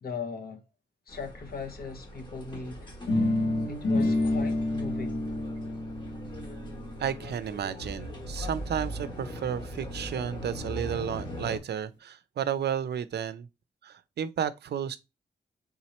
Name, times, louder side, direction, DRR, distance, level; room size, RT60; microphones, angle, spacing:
voice 1, 0.0-0.6 1.1-2.9 3.7-5.3, left 5 dB, 55° left, 0.8 m, -39 dB
sound 1, 1.1-11.6, equal, 25° left, 1.1 m, -40 dB
sound 2, 3.1-9.0, left 2 dB, 80° left, 1.3 m, -30 dB
voice 2, 7.0-13.5 13.8-15.0, right 8 dB, 65° right, 0.5 m, -32 dB
4.3 x 3.6 x 3.0 m
wide cardioid pair, 175°, 18 cm